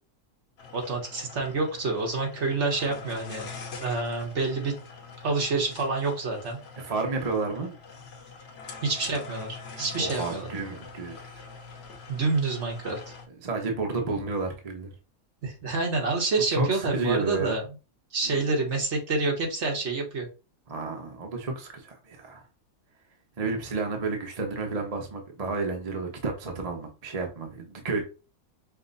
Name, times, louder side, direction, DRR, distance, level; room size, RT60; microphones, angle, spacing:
sound 1, 0.6-13.3, left 4 dB, 50° left, 1.0 m, -44 dB
voice 1, 0.7-3.5 3.8-4.7 5.2-6.6 8.8-10.5 12.1-13.1 15.4-17.6 18.1-20.3, right 3 dB, 55° right, 1.4 m, -28 dB
voice 2, 6.8-7.7 10.0-11.4 13.4-14.9 16.5-17.6 18.2-18.4 20.7-22.4 23.4-28.0, right 3 dB, 30° right, 0.8 m, -31 dB
5.5 x 2.1 x 4.0 m
omnidirectional pair, 1.5 m